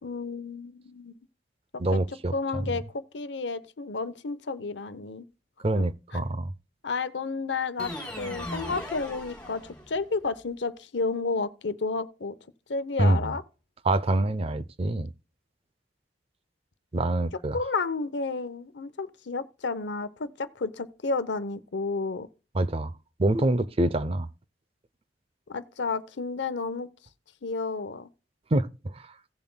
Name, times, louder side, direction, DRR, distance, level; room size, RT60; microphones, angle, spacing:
voice 1, 0.0-1.1 1.9-2.0 2.3-5.2 5.7-5.9 6.1-6.2 6.8-12.4 12.7-13.4 17.5-22.3 25.5-26.9 27.4-28.1, left 4 dB, 80° left, 0.8 m, -31 dB
voice 2, 1.8-2.7 5.6-6.5 13.0-13.3 13.9-15.1 16.9-17.6 22.5-22.9 23.2-24.3 28.5-29.0, right 2 dB, 35° right, 0.6 m, -25 dB
sound 1, 7.8-10.1, left 1 dB, 5° left, 3.3 m, -38 dB
16.5 x 7.1 x 2.2 m
head